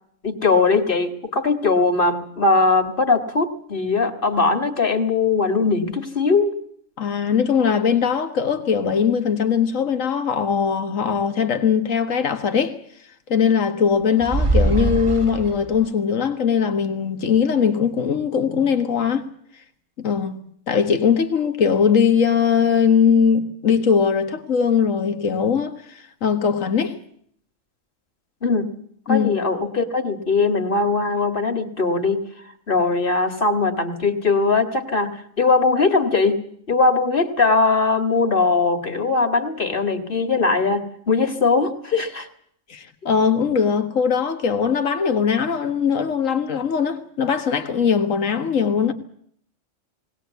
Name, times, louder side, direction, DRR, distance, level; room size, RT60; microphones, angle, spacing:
voice 1, 0.2-6.6 28.4-28.7 29.1-32.2 32.7-36.4 36.7-42.3, left 3 dB, 45° left, 2.1 m, -20 dB
voice 2, 7.0-12.8 13.3-19.3 20.0-20.4 20.7-26.9 29.1-29.3 42.7-48.9, left 6 dB, 80° left, 1.9 m, -20 dB
sound 1, 14.2-15.8, right 2 dB, 25° right, 1.0 m, -21 dB
20.5 x 18.5 x 8.2 m
omnidirectional pair, 1.3 m